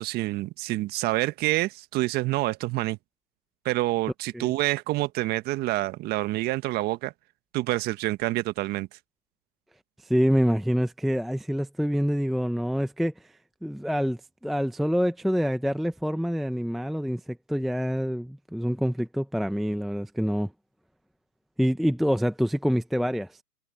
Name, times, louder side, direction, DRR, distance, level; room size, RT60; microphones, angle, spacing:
voice 1, 0.0-3.0 3.6-7.1 7.5-8.9, right 18 dB, 20° right, 1.5 m, -27 dB
voice 2, 10.0-13.3 13.6-20.5 21.6-23.4, equal, ahead, 0.9 m, -26 dB
hypercardioid pair, 135°, 49 cm